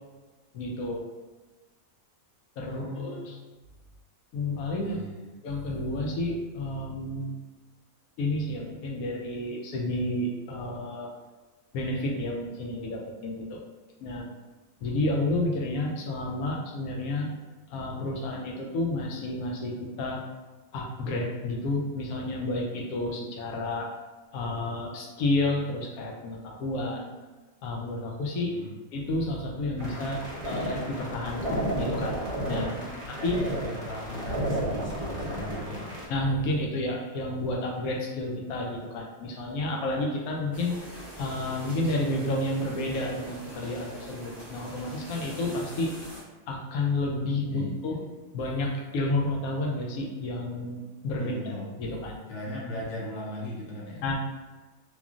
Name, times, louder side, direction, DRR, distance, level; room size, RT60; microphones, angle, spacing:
voice 1, 0.5-1.0 2.6-3.3 4.3-5.0 5.4-7.4 8.2-11.1 11.7-13.6 14.0-14.3 14.8-17.3 17.7-20.2 20.7-23.9 24.3-27.1 27.6-28.5 28.9-32.2 32.5-32.7 33.1-33.4 36.1-45.9 46.5-48.0 48.3-52.2 54.0-54.2, left 2 dB, 85° left, -1 dB, 1.1 m, -30 dB
voice 2, 2.7-3.3 4.8-5.3 28.5-28.8 32.6-35.9 47.5-48.2 51.2-51.7 52.3-54.0, left 1 dB, 65° left, -3 dB, 0.9 m, -38 dB
sound 1, 29.8-36.0, right 1 dB, 25° right, 0.7 m, -32 dB
sound 2, 40.5-46.2, equal, 5° right, 0.3 m, -43 dB
3.0 x 2.4 x 2.4 m, 1.2 s
omnidirectional pair, 1.5 m